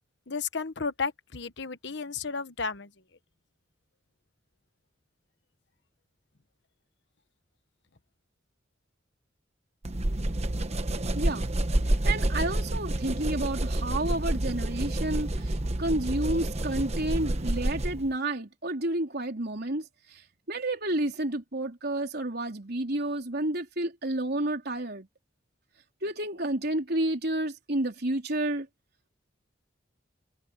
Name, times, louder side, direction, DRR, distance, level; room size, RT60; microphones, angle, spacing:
voice 1, 0.3-2.9, left 4 dB, 70° left, 1.2 m, -33 dB
sound 1, 9.8-18.1, right 1 dB, 35° right, 1.0 m, -29 dB
voice 2, 11.1-11.5 12.0-20.2 20.5-25.1 26.0-28.7, right 1 dB, 60° right, 3.9 m, -30 dB
head